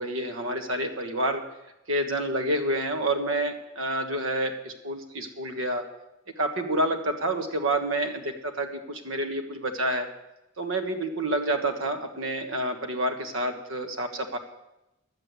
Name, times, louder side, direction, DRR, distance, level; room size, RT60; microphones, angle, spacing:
voice 1, 0.0-1.4 1.9-5.8 6.4-10.1 10.6-14.4, right 1 dB, 70° right, 5 dB, 1.4 m, -28 dB
11.0 x 7.9 x 8.2 m, 0.92 s
head